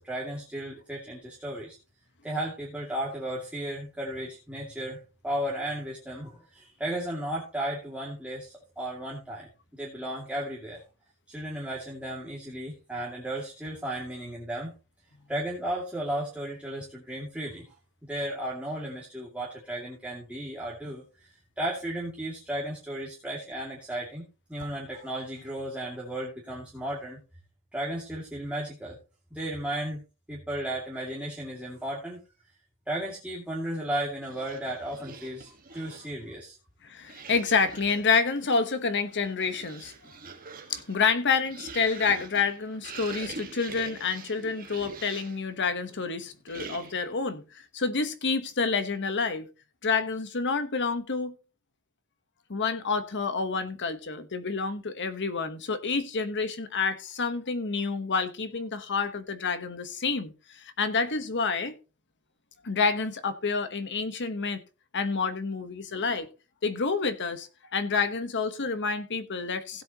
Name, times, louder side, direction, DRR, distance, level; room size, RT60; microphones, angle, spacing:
voice 1, 0.0-1.8 2.2-10.8 11.3-14.7 15.3-17.6 18.0-27.2 27.7-29.0 29.3-30.0 30.3-32.2 32.9-36.6, right 1 dB, 5° right, 2.4 m, -34 dB
sound 1, 34.2-36.2 37.0-38.3 39.0-45.5 46.5-47.2, right 5 dB, 40° right, 1.5 m, -44 dB
voice 2, 36.8-39.9 40.7-49.5 49.8-51.3 52.5-61.8 62.6-64.6 64.9-66.3 66.6-69.8, left 5 dB, 55° left, 1.2 m, -28 dB
16.5 x 7.7 x 3.0 m
head